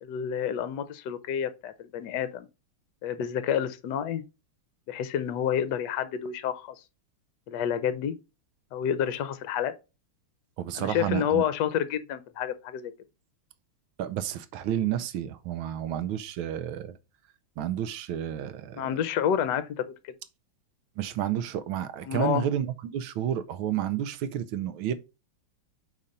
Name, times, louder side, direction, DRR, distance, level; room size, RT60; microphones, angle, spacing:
voice 1, 0.0-2.5 3.0-4.2 4.9-6.7 7.5-8.1 8.7-9.7 10.7-12.9 18.8-20.1 22.0-22.5, left 9 dB, 65° left, 1.2 m, -29 dB
voice 2, 10.6-11.4 14.0-17.0 17.6-18.9 21.0-24.9, right 10 dB, 80° right, 1.5 m, -31 dB
5.0 x 4.3 x 5.2 m
omnidirectional pair, 2.3 m